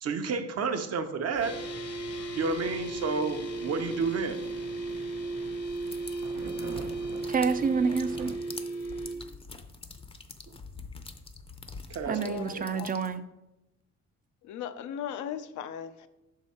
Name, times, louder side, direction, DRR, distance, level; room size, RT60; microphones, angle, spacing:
voice 1, 0.0-1.6 2.3-4.4 10.5-10.6 11.9-12.6, right 4 dB, 55° right, 0.8 m, -31 dB
sound 1, 1.3-8.3, right 4 dB, 90° right, 0.9 m, -46 dB
sound 2, 1.4-9.2, right 2 dB, 55° left, 0.9 m, -35 dB
sound 3, 5.7-13.2, left 4 dB, 20° left, 0.6 m, -46 dB
voice 2, 7.3-8.3 12.1-13.2, right 5 dB, 30° right, 0.4 m, -28 dB
voice 3, 12.1-12.9 14.4-16.1, left 9 dB, 75° left, 0.6 m, -38 dB
6.1 x 4.8 x 4.2 m
cardioid pair, 90°, 30 cm